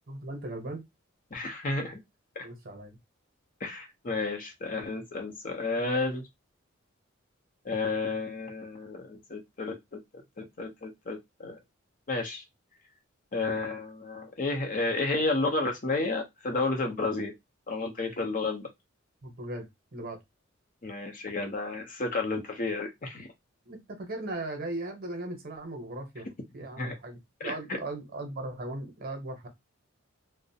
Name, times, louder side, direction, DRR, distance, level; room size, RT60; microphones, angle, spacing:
voice 1, 0.1-0.8 2.4-3.0 19.2-20.2 23.6-26.3 26.5-29.5, right 2 dB, 50° right, 0.8 m, -38 dB
voice 2, 1.3-2.0 2.4-2.5 3.6-6.2 7.6-10.0 10.4-11.6 12.1-12.4 13.3-17.3 17.7-18.7 20.8-23.3 26.8-26.9 27.4-27.5, left 3 dB, 45° left, 0.6 m, -31 dB
2.3 x 2.0 x 2.7 m
head